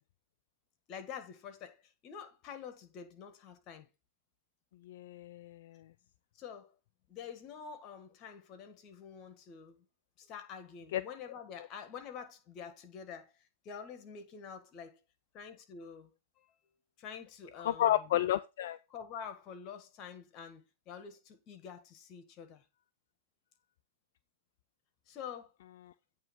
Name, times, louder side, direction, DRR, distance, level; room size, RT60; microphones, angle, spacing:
voice 1, 0.9-3.9 6.4-6.8 7.1-9.9 10.2-15.0 15.3-16.5 17.0-18.1 18.9-22.6 25.1-25.5, left 7 dB, 40° left, 1.7 m, -47 dB
voice 2, 4.9-5.7 10.9-11.0 17.6-18.8, left 12 dB, 65° left, 0.4 m, -31 dB
8.8 x 3.1 x 6.0 m
hypercardioid pair, 110°, 0 cm